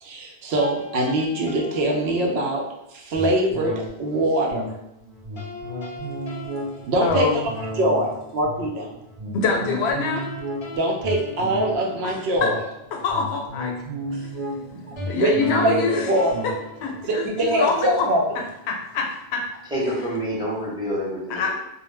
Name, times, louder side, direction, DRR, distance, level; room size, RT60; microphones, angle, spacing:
voice 1, 0.0-2.6 2.9-4.7 6.9-7.5 7.8-8.9 10.7-12.6 14.1-14.2 15.1-15.3 15.6-16.3 17.1-18.2, right 1 dB, 75° right, 0 dB, 0.8 m, -23 dB
sound 1, 0.6-2.7 5.4-7.8 10.2-12.7 15.0-17.8, left 3 dB, 50° left, 0.3 m, -40 dB
sound 2, 3.1-18.9 19.3-19.4, right 1 dB, 45° right, 0.4 m, -34 dB
voice 2, 7.0-7.4 9.3-10.3 12.0-12.5 12.9-13.7 14.2-16.1 16.4-16.5 16.8-18.1 18.7-19.5 21.3-21.5, left 4 dB, 80° left, 1 dB, 0.8 m, -25 dB
voice 3, 19.7-21.5, equal, 5° right, -7 dB, 0.7 m, -27 dB
2.2 x 2.1 x 3.1 m, 0.87 s
omnidirectional pair, 1.1 m